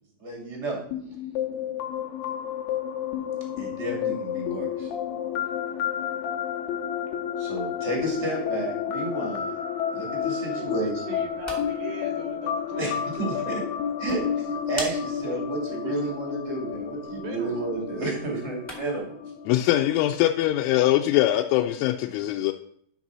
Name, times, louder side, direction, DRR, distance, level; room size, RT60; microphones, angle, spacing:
voice 1, 0.2-0.8 3.6-4.9 7.4-9.5 9.9-11.2 12.8-12.9 13.2-13.6 14.0-14.2 14.7-19.2, right 3 dB, 55° right, -1 dB, 0.7 m, -31 dB
sound 1, 0.9-20.4, left 8 dB, 75° left, 2.5 m, -31 dB
voice 2, 10.5-13.4 15.3-16.0 17.0-17.7, right 8 dB, 80° right, 2 dB, 2.5 m, -42 dB
sound 2, 11.1-19.1, equal, 15° left, 0.4 m, -44 dB
voice 3, 19.5-22.5, left 14 dB, 90° left, 3 dB, 3.0 m, -22 dB
12.0 x 4.1 x 6.0 m, 0.66 s
omnidirectional pair, 5.4 m